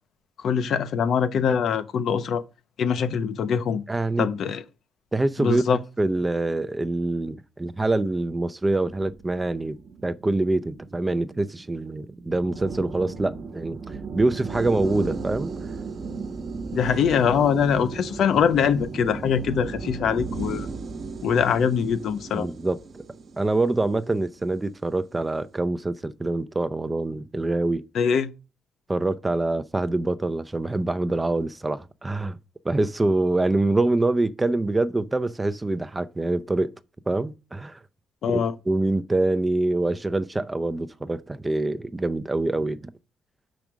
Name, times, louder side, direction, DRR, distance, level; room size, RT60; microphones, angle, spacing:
voice 1, 0.4-2.4 2.8-3.8 4.2-4.6 5.4-5.8 16.7-20.7 21.2-22.5 27.9-28.3 38.2-38.5, left 7 dB, 70° left, 0.8 m, -23 dB
voice 2, 3.9-4.3 5.1-5.6 6.0-9.8 10.0-15.5 22.3-22.8 23.4-27.8 28.9-32.4 32.6-36.7 37.1-37.8 38.3-42.9, right 2 dB, 15° right, 0.6 m, -25 dB
sound 1, 9.0-24.5, right 4 dB, 55° right, 1.2 m, -36 dB
5.9 x 5.2 x 6.2 m
cardioid pair, 90°, 0 cm